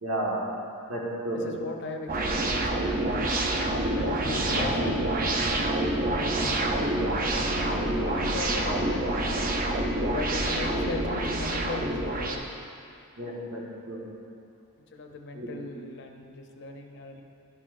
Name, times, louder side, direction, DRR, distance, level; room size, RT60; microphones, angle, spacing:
voice 1, 0.0-0.4 0.9-1.4 2.2-2.3 4.6-4.8 13.2-13.6 13.9-14.0 15.3-15.5, right 1 dB, 80° right, -5 dB, 1.7 m, -32 dB
voice 2, 1.4-3.3 4.0-5.4 6.1-9.2 10.1-12.4 14.9-17.2, left 2 dB, 55° left, 4 dB, 0.6 m, -38 dB
sound 1, 2.1-12.4, right 1 dB, 40° right, 0.6 m, -27 dB
12.0 x 5.8 x 2.5 m, 2.4 s
head